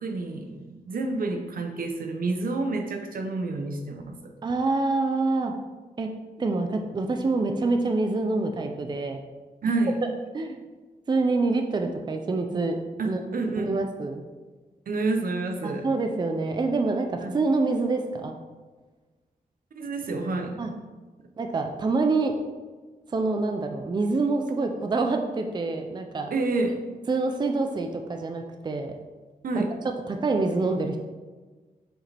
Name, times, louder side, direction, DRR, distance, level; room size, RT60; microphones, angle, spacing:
voice 1, 0.0-4.3 9.6-10.0 13.0-13.7 14.9-15.9 17.2-17.3 19.7-20.6 26.3-26.8 29.4-29.7, right 3 dB, 75° right, 5 dB, 0.8 m, -29 dB
voice 2, 4.4-5.5 6.0-6.1 6.4-9.2 10.3-10.6 11.1-12.8 13.0-13.2 13.6-14.2 15.6-18.4 20.6-20.7 21.4-22.4 23.1-26.3 27.1-28.9 29.6-29.7 30.1-31.0, right 3 dB, 30° right, 4 dB, 0.4 m, -26 dB
7.4 x 4.8 x 3.4 m, 1.3 s
wide cardioid pair, 160°, 15 cm